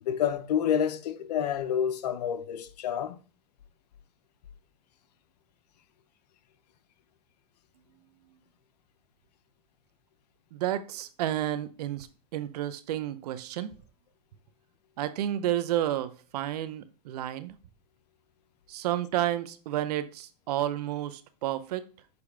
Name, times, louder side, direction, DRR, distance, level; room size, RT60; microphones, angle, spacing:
voice 1, 0.0-3.2, left 9 dB, 85° left, 0.8 m, -28 dB
voice 2, 10.5-13.7 15.0-17.5 18.7-21.8, right 12 dB, 75° right, 0.8 m, -31 dB
6.9 x 4.8 x 3.3 m
supercardioid pair, 130°, 20 cm